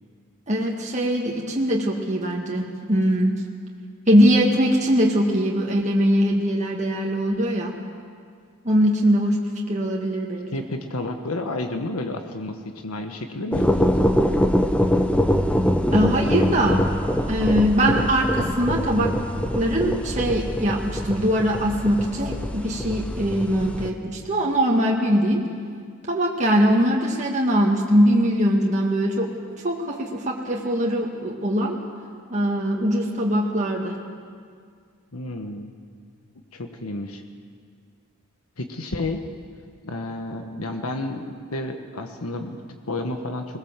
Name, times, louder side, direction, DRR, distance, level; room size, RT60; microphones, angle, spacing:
voice 1, 0.5-3.4 4.1-7.7 8.7-10.5 15.9-16.9 17.3-19.1 19.5-25.4 26.1-29.3 29.6-31.8 32.3-34.0, equal, 35° right, -2 dB, 1.7 m, -21 dB
voice 2, 10.5-12.6 12.8-14.5 35.1-35.7 36.5-37.2 38.6-39.2 39.8-43.6, left 2 dB, 85° left, 5 dB, 1.3 m, -31 dB
sound 1, 13.5-23.9, equal, 5° left, 0.8 m, -23 dB
21.0 x 19.5 x 7.4 m, 2.1 s
head